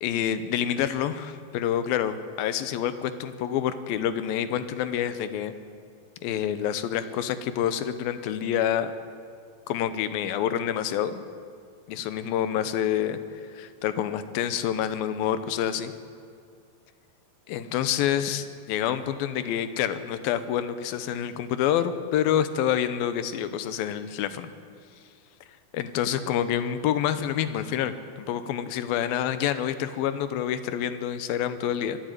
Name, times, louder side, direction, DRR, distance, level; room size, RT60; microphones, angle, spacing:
voice 1, 0.0-5.5 6.2-8.9 9.7-11.2 11.9-13.2 13.5-15.9 17.5-24.5 25.7-32.0, left 10 dB, 80° left, 12 dB, 2.7 m, -27 dB
24.5 x 11.5 x 9.2 m, 2.2 s
omnidirectional pair, 4.2 m